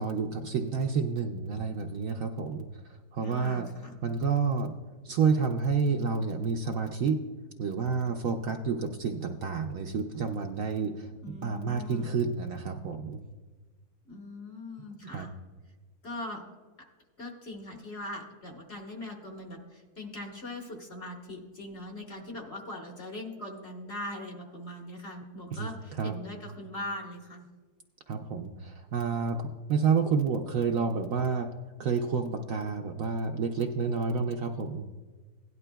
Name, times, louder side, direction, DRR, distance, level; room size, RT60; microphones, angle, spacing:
voice 1, 0.0-2.6 3.1-3.7 4.0-4.7 5.1-7.2 7.6-11.1 11.4-13.2 15.1-15.3 25.5-25.7 26.0-26.1 28.1-31.5 31.8-34.8, right 5 dB, 65° right, 4 dB, 0.9 m, -29 dB
voice 2, 3.2-4.0 11.2-12.2 14.0-15.3 16.0-16.4 17.2-27.4, left 1 dB, 45° left, 1 dB, 1.4 m, -41 dB
16.5 x 11.0 x 2.2 m, 1.3 s
omnidirectional pair, 1.7 m